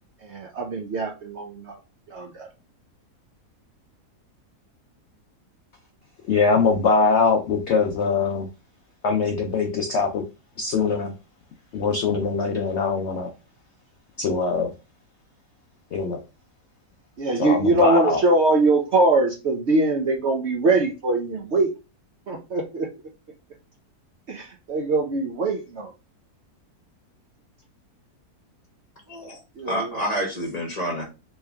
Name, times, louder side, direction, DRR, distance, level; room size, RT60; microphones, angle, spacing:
voice 1, 0.2-1.8 2.1-2.5 17.2-21.7 22.3-22.9 24.3-25.9 29.6-30.0, right 2 dB, 60° right, 0.7 m, -22 dB
voice 2, 6.2-8.5 9.0-10.2 10.6-11.1 11.7-13.3 14.2-14.7 15.9-16.2 17.4-18.2, left 4 dB, 65° left, 0.7 m, -22 dB
voice 3, 29.1-31.0, equal, 30° left, 0.8 m, -29 dB
3.2 x 3.1 x 3.4 m
omnidirectional pair, 1.7 m